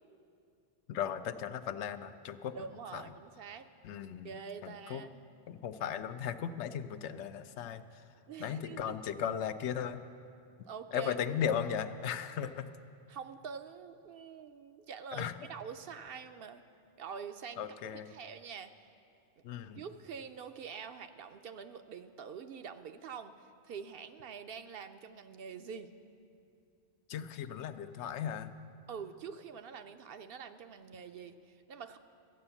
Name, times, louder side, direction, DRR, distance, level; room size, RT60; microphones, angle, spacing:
voice 1, 0.9-2.6 2.9-3.0 3.8-4.3 4.6-5.0 5.5-7.8 8.4-10.0 10.9-12.7 15.1-15.3 17.6-18.1 19.4-19.8 27.1-28.5, left 8 dB, 85° left, 10 dB, 0.9 m, -36 dB
voice 2, 2.5-3.7 4.2-5.2 8.3-9.0 10.6-11.2 13.1-16.6 17.0-17.7 18.1-18.7 19.8-25.9 28.9-32.0, right 6 dB, 65° right, 9 dB, 0.7 m, -45 dB
13.5 x 8.9 x 7.0 m, 2.5 s
omnidirectional pair, 1.1 m